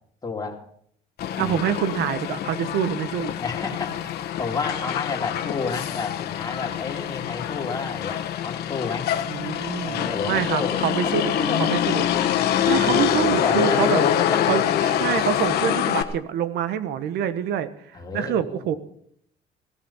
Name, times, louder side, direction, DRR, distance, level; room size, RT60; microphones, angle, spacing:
voice 1, 0.2-0.6 1.4-1.6 3.4-9.1 9.8-10.8 11.0-11.8 12.5-14.5 17.9-18.8, left 4 dB, 20° left, 0 dB, 3.1 m, -31 dB
Motor vehicle (road), 1.2-16.0, left 10 dB, 70° left, 1.4 m, -25 dB
voice 2, 1.4-3.3 9.3-11.3 11.6-12.1 12.6-14.0 14.5-17.7 18.1-18.8, right 9 dB, 75° right, 13 dB, 1.2 m, -26 dB
17.0 x 14.0 x 5.7 m, 0.65 s
cardioid pair, 110°, 17 cm